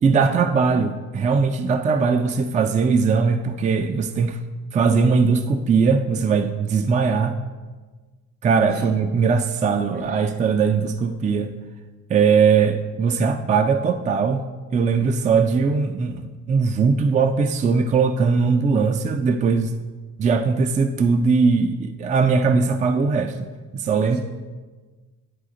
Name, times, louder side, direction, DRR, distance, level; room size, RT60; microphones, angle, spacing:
voice 1, 0.0-4.4 4.7-7.4 8.4-11.5 12.1-14.4 14.7-19.7 20.2-23.5 23.7-24.2, right 5 dB, 25° right, 8 dB, 0.3 m, -20 dB
voice 2, 9.9-10.4 24.0-24.2, right 2 dB, 75° right, 1 dB, 1.9 m, -40 dB
10.5 x 4.1 x 3.7 m, 1.3 s
cardioid pair, 90°, 30 cm